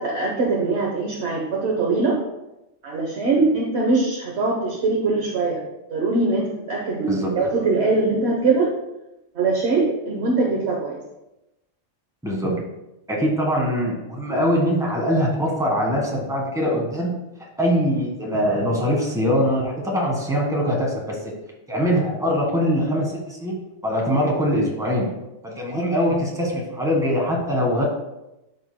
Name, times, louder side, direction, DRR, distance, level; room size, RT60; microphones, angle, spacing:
voice 1, 0.0-2.2 2.8-5.6 5.9-8.7 9.3-11.0, right 3 dB, 55° right, -2 dB, 1.3 m, -22 dB
voice 2, 12.2-12.6 13.1-17.1 17.6-21.2 21.7-23.6 23.8-25.1 25.4-27.8, equal, 5° right, -2 dB, 1.4 m, -22 dB
12.0 x 5.3 x 2.2 m, 0.94 s
omnidirectional pair, 1.4 m